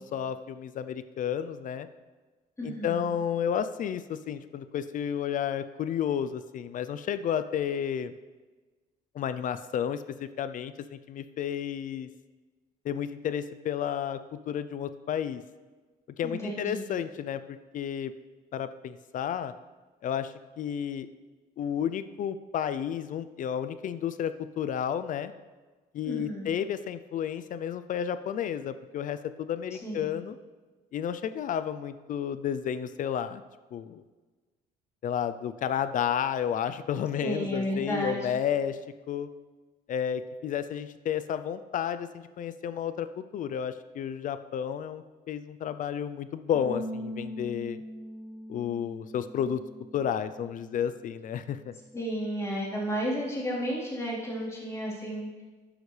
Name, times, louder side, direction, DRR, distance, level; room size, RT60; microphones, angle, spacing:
voice 1, 0.0-1.9 2.6-8.1 9.1-12.1 12.8-14.2 14.5-15.4 16.2-18.1 18.5-19.5 20.0-21.1 21.6-25.3 25.9-30.4 30.9-33.4 33.7-34.0 35.0-38.8 39.1-39.3 39.9-47.8 48.5-49.6 49.9-51.7, left 9 dB, 50° left, 12 dB, 0.5 m, -32 dB
voice 2, 2.6-3.2 16.2-16.9 26.0-26.5 29.8-30.2 37.2-38.4 51.9-55.4, equal, 15° left, -6 dB, 3.9 m, -33 dB
Bass guitar, 46.5-52.8, equal, 45° right, 1.6 m, -42 dB
12.0 x 9.8 x 3.3 m, 1.3 s
cardioid pair, 110°, 17 cm